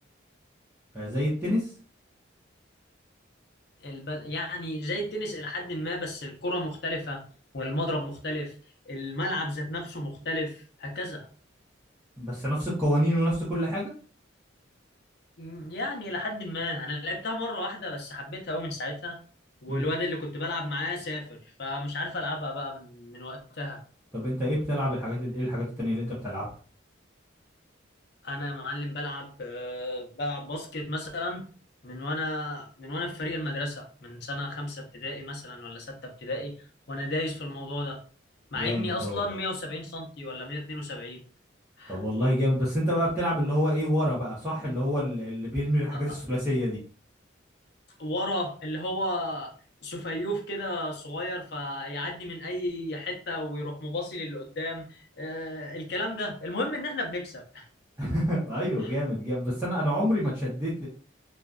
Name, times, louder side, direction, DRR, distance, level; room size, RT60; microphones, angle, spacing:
voice 1, 0.9-1.7 12.2-13.9 19.7-19.8 24.1-26.4 38.5-39.2 41.9-46.8 58.0-60.9, equal, 10° right, -9 dB, 0.6 m, -27 dB
voice 2, 3.8-7.2 7.5-8.5 8.9-11.3 15.4-19.2 19.6-23.8 28.2-31.4 31.8-36.5 36.9-38.0 38.5-41.2 41.8-42.0 45.9-46.2 48.0-49.5 49.8-57.7 58.8-58.9, left 1 dB, 55° left, 2 dB, 0.6 m, -33 dB
2.5 x 2.2 x 2.2 m, 0.40 s
head